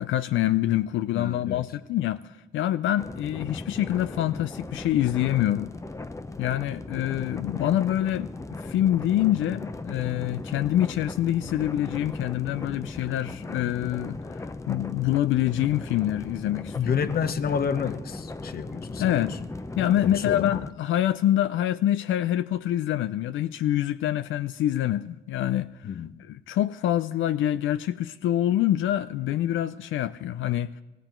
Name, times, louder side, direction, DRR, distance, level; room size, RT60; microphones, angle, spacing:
voice 1, 0.0-5.7 6.4-8.3 8.6-17.1 19.0-19.4 19.8-25.9 26.3-30.7, left 12 dB, 75° left, 0.4 m, -26 dB
voice 2, 1.1-1.6 7.4-7.7 16.7-19.4 19.8-20.5 25.8-26.1, left 7 dB, 50° left, 0.9 m, -29 dB
sound 1, 3.0-20.7, left 3 dB, 15° left, 0.6 m, -37 dB
18.5 x 15.5 x 4.4 m
cardioid pair, 90°, 20 cm